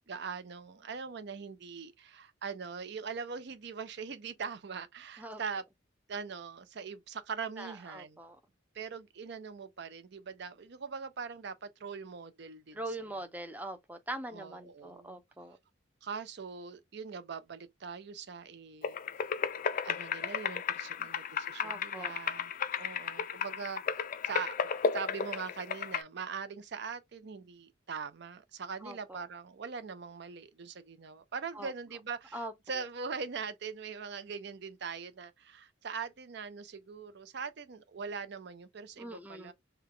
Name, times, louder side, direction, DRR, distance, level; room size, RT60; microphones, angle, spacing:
voice 1, 0.1-5.6 6.1-8.2 8.7-13.2 14.3-15.2 16.0-19.3 19.8-22.5 22.8-39.5, right 5 dB, 60° right, 0.5 m, -42 dB
voice 2, 7.6-8.4 12.7-15.6 21.0-21.1 21.6-22.1 28.8-29.2 31.6-31.7 32.3-32.5 39.0-39.5, right 1 dB, 10° right, 0.5 m, -42 dB
sound 1, 18.8-26.0, left 6 dB, 45° left, 0.4 m, -34 dB
3.4 x 2.2 x 3.7 m
head